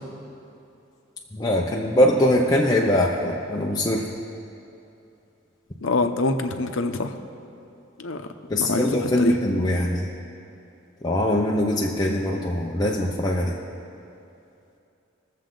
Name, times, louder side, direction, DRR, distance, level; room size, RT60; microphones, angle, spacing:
voice 1, 1.3-4.1 8.5-10.1 11.0-13.6, left 1 dB, 20° left, -3 dB, 0.7 m, -22 dB
voice 2, 5.8-7.2 8.0-8.3 8.6-9.4, left 2 dB, 85° left, 7 dB, 0.8 m, -25 dB
22.0 x 7.5 x 3.9 m, 2.7 s
head